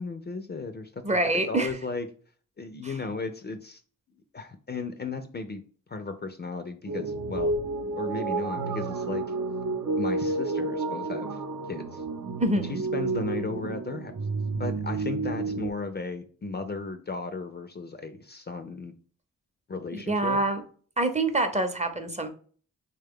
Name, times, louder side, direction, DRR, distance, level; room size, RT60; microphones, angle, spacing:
voice 1, 0.0-2.1 2.6-3.8 4.3-5.6 5.9-7.5 8.0-9.2 10.0-11.4 11.7-12.0 12.5-14.2 14.6-18.9 19.7-20.4, left 3 dB, 30° left, 8 dB, 0.4 m, -35 dB
voice 2, 1.0-1.7 12.4-12.8 19.9-20.6 21.0-22.3, right 2 dB, 20° right, 7 dB, 0.6 m, -26 dB
sound 1, 6.9-15.7, right 3 dB, 65° right, 0.6 m, -30 dB
3.2 x 2.3 x 3.5 m, 0.43 s
cardioid pair, 65°, 33 cm